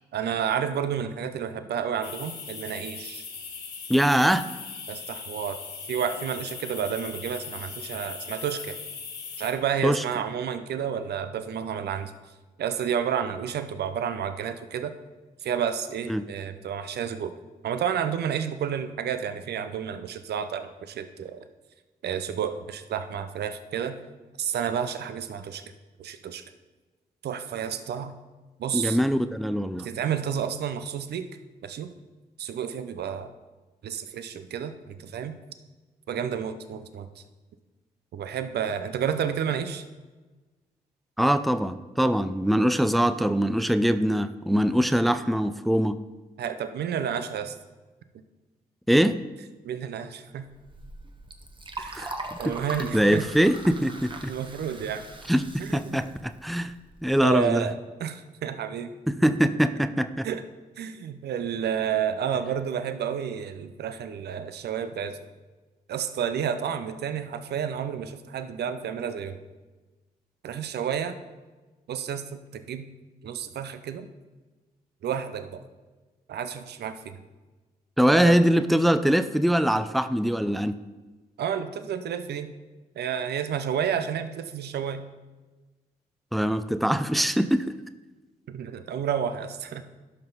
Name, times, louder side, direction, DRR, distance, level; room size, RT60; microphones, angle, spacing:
voice 1, 0.1-3.2 4.9-5.6 5.9-8.8 9.4-12.1 12.6-14.9 15.4-17.3 17.6-21.4 22.0-24.0 24.4-25.6 26.0-26.4 27.2-28.1 28.6-29.0 29.8-31.2 31.6-31.9 32.4-33.3 33.8-35.3 36.1-37.2 38.1-39.8 46.4-47.6 49.6-50.5 51.8-52.1 52.4-53.3 54.3-55.1 55.6-56.0 57.2-58.9 60.2-60.4 60.8-65.3 65.9-69.4 70.4-71.2 71.9-72.9 73.2-74.1 75.0-75.6 76.3-77.2 78.1-78.4 81.4-82.5 83.0-85.1 88.5-89.8, right 8 dB, 70° right, 10 dB, 0.7 m, -30 dB
sound 1, 2.0-9.5, left 5 dB, 70° left, 1.6 m, -39 dB
voice 2, 3.9-4.5 9.8-10.0 16.1-16.2 28.7-29.9 41.2-46.0 48.9-49.2 51.9-52.1 52.9-54.3 55.3-56.7 57.0-57.6 59.1-60.3 78.0-80.8 86.3-87.7, equal, ahead, 10 dB, 0.6 m, -23 dB
Liquid, 50.5-57.2, right 2 dB, 30° right, 1.2 m, -41 dB
12.0 x 5.7 x 4.0 m, 1.2 s
supercardioid pair, 50°, 18 cm